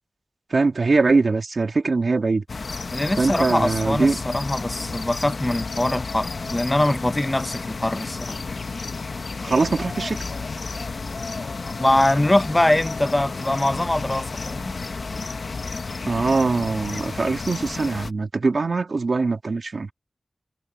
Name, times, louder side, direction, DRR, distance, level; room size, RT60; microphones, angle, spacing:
voice 1, 0.5-2.4 3.2-4.2 9.4-10.2 16.1-19.9, right 3 dB, 75° right, 2.1 m, -22 dB
sound 1, 2.5-18.1, left 4 dB, 80° left, 1.0 m, -32 dB
voice 2, 2.9-8.4 11.6-14.7, left 1 dB, 25° left, 1.1 m, -23 dB
cardioid pair, 40°, 0 cm